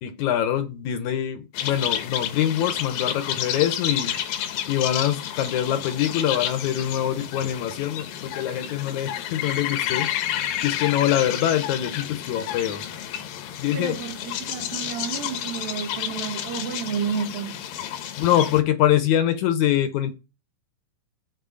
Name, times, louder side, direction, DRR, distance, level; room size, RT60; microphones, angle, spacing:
voice 1, 0.0-4.4 4.7-12.8 13.6-14.0 18.2-20.1, left 11 dB, 75° left, 2.0 m, -24 dB
sound 1, 1.5-18.6, left 10 dB, 90° left, 2.9 m, -31 dB
voice 2, 13.7-17.6, right 7 dB, 85° right, 3.3 m, -31 dB
8.2 x 4.4 x 6.2 m
omnidirectional pair, 4.0 m